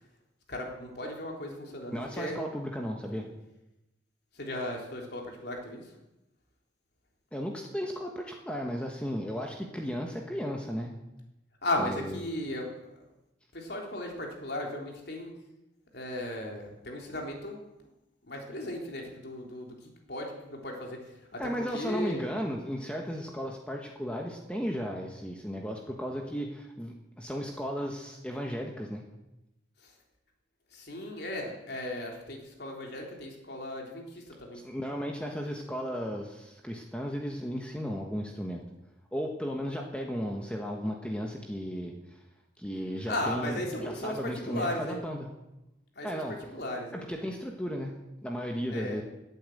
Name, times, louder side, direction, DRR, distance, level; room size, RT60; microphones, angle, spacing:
voice 1, 0.5-2.4 3.2-3.3 4.3-5.9 11.6-12.7 13.5-15.3 15.9-17.6 18.3-19.7 20.1-21.4 21.7-22.3 29.8-29.9 30.7-34.6 43.1-45.0 46.0-46.2 46.5-47.1 48.7-49.0, left 1 dB, 55° left, 0 dB, 3.7 m, -36 dB
voice 2, 1.9-3.3 7.3-10.9 11.8-12.2 21.4-29.0 34.6-38.6 39.1-42.2 42.6-45.3 46.0-46.4 46.9-49.0, equal, 5° left, 1 dB, 1.3 m, -35 dB
18.0 x 8.9 x 7.9 m, 0.93 s
head